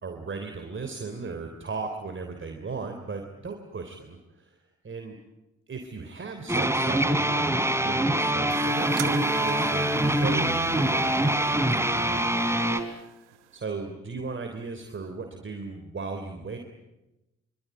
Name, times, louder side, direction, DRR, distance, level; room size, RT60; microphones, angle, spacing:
voice 1, 0.0-4.6 4.8-5.2 5.7-12.8 13.5-16.6, right 4 dB, 35° right, 5 dB, 3.5 m, -37 dB
sound 1, 6.5-12.8, right 1 dB, 10° right, 3.5 m, -24 dB
sound 2, 8.5-13.6, right 13 dB, 80° right, 1.1 m, -40 dB
25.0 x 25.0 x 9.4 m, 0.99 s
figure-of-eight pair, 40°, 34 cm